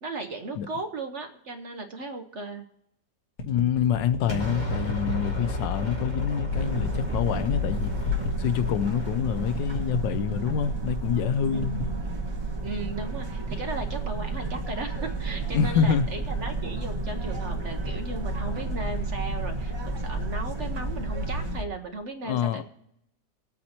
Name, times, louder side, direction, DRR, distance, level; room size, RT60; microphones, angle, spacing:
voice 1, 0.0-2.7 11.5-12.0 12.6-22.6, right 2 dB, 50° right, 1.0 m, -36 dB
sound 1, 3.4-11.9, left 2 dB, 50° left, 1.6 m, -33 dB
voice 2, 3.5-7.9 8.4-11.8 15.5-16.0 22.2-22.6, left 8 dB, 85° left, 1.4 m, -26 dB
Explosion, 4.3-10.3, left 3 dB, 25° left, 1.7 m, -32 dB
sound 2, 6.5-21.6, right 3 dB, 15° right, 1.0 m, -32 dB
21.5 x 8.6 x 2.9 m
omnidirectional pair, 1.9 m